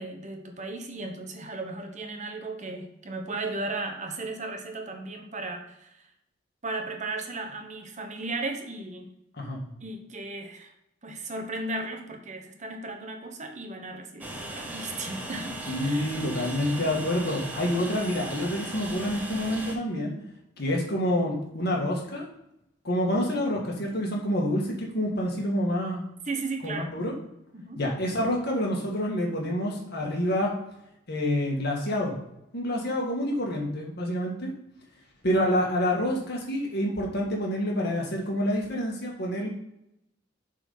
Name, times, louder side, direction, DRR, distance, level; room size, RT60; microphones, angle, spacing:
voice 1, 0.0-6.1 6.6-9.1 9.8-10.7 11.0-16.2 22.9-23.2 26.3-26.9 27.5-27.8, right 2 dB, 40° right, 4 dB, 1.0 m, -36 dB
Train, 14.2-19.7, right 1 dB, 10° right, 1.1 m, -37 dB
voice 2, 15.7-20.1 20.6-22.3 22.8-26.1 26.6-27.1 27.8-30.5 31.1-32.1 32.5-34.5 35.2-39.5, left 1 dB, 60° left, -1 dB, 1.8 m, -27 dB
7.3 x 4.1 x 5.5 m, 0.82 s
head